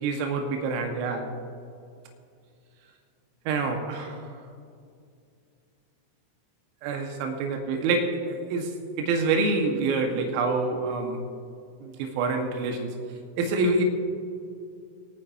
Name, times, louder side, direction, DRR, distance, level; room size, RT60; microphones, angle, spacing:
voice 1, 0.0-1.3 3.4-4.3 6.8-11.2 11.8-13.0 13.4-13.8, right 3 dB, 55° right, 5 dB, 1.7 m, -27 dB
24.0 x 9.5 x 3.0 m, 2.4 s
hypercardioid pair, 95°, 0 cm